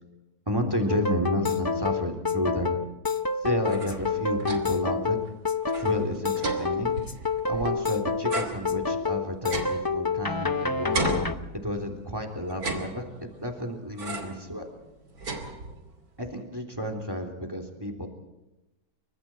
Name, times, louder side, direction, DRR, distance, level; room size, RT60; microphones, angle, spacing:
voice 1, 0.5-2.8 3.4-5.2 5.7-6.9 7.5-11.1 11.5-14.7 16.2-18.1, equal, 15° right, 5 dB, 3.4 m, -31 dB
sound 1, 0.9-11.3, left 4 dB, 35° left, 0.3 m, -28 dB
sound 2, 3.4-4.9 5.2-5.3 5.6-7.8 8.3-10.5 10.9-12.0 12.5-13.4 14.0-14.5 14.8-16.0, right 2 dB, 60° right, 3.1 m, -35 dB
29.0 x 24.5 x 4.5 m, 1.0 s
omnidirectional pair, 1.8 m